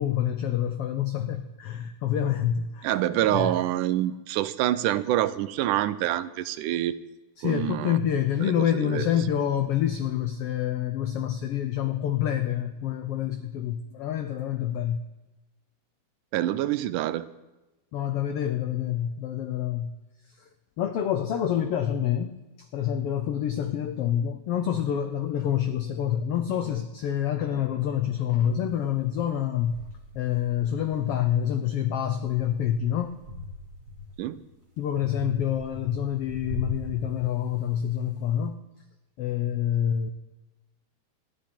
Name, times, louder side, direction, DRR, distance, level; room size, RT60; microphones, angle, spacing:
voice 1, 0.0-2.9 3.3-3.5 7.4-15.0 17.9-19.9 20.4-20.5 20.8-29.8 30.1-33.2 34.8-38.6 39.2-40.1, left 10 dB, 85° left, 8 dB, 1.3 m, -27 dB
voice 2, 2.8-7.0 7.4-8.0 8.4-9.1 16.3-17.3 34.2-34.4, right 13 dB, 85° right, 14 dB, 2.2 m, -26 dB
sound 1, 28.9-29.0 29.7-31.5 32.0-34.3 34.9-37.7, left 1 dB, 50° right, 5.4 m, -40 dB
26.0 x 11.0 x 4.4 m, 1.0 s
omnidirectional pair, 3.6 m